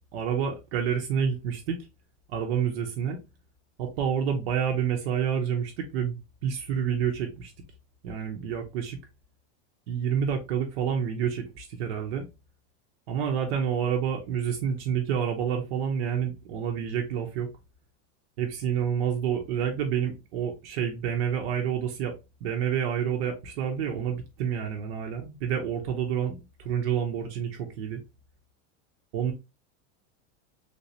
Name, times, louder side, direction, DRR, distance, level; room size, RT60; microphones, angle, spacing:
voice 1, 0.1-1.8 2.3-3.2 3.8-6.2 6.4-7.5 8.0-9.0 9.9-12.3 13.1-17.5 18.4-22.1 22.4-28.0 29.1-29.3, right 8 dB, 60° right, 2 dB, 0.8 m, -28 dB
3.4 x 2.7 x 3.1 m, 0.26 s
supercardioid pair, 175°, 36 cm